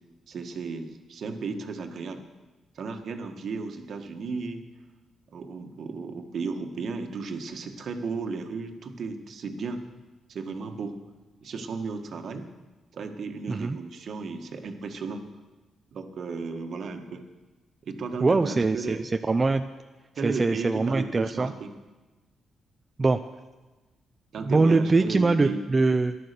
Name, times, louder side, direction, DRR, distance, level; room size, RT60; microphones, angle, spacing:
voice 1, 0.3-2.2 2.7-4.7 5.3-9.8 10.3-11.0 11.4-12.5 12.9-15.3 15.9-17.2 17.8-19.0 20.2-21.7 24.3-25.6, right 4 dB, 60° right, 5 dB, 1.5 m, -34 dB
voice 2, 18.2-19.6 20.2-21.5 23.0-23.2 24.5-26.2, right 3 dB, 25° right, 8 dB, 0.5 m, -23 dB
14.5 x 11.5 x 6.8 m, 1.2 s
cardioid pair, 120°, 0 cm